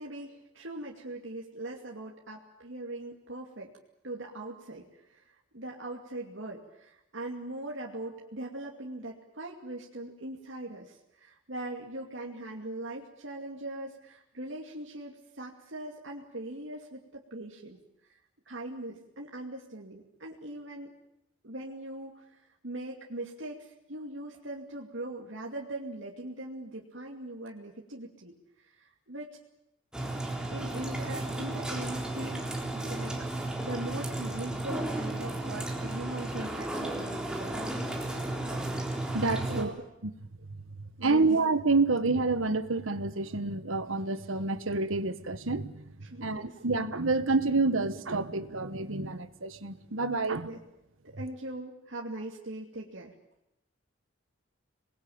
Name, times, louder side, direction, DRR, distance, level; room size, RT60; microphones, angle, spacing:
voice 1, 0.0-3.7 4.0-17.8 18.1-18.2 18.5-20.9 21.4-29.4 30.5-37.6 39.4-39.7 41.0-41.4 46.0-46.6 50.4-50.6 51.0-53.1, right 1 dB, 70° right, -1 dB, 2.6 m, -41 dB
sound 1, 29.9-39.6, right 1 dB, 5° right, 3.9 m, -34 dB
voice 2, 39.1-39.7 41.0-45.8 46.2-50.5, right 3 dB, 90° right, 11 dB, 1.5 m, -28 dB
27.0 x 20.5 x 8.8 m, 0.85 s
head